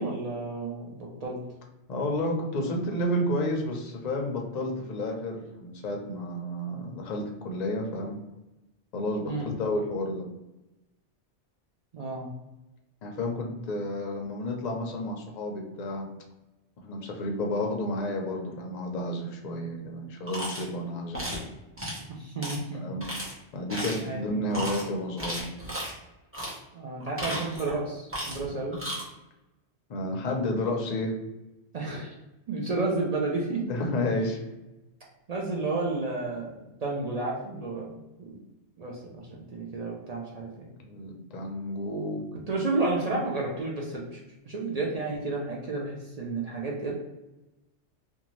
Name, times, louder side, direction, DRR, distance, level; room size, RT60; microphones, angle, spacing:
voice 1, 0.0-1.4 9.3-9.5 11.9-12.3 22.1-22.9 24.0-24.6 26.7-28.8 31.7-32.1 32.5-33.6 35.3-38.4 38.8-40.7 42.3-44.2 44.4-46.9, right 3 dB, 55° right, -3 dB, 0.4 m, -31 dB
voice 2, 1.9-8.2 8.9-10.2 13.0-16.1 16.8-21.2 22.8-23.1 23.5-25.5 29.9-31.2 33.7-34.4 40.8-42.2, left 1 dB, 55° left, 1 dB, 0.5 m, -31 dB
sound 1, 20.3-20.7 21.1-21.4 21.8-22.0 22.4-22.6 23.0-23.3 23.7-24.1 24.5-24.8 25.2-25.9 26.3-26.6 27.0-27.7 28.1-28.5 28.7-29.0, equal, 15° right, 0.7 m, -34 dB
2.6 x 2.3 x 3.0 m, 1.0 s
omnidirectional pair, 1.2 m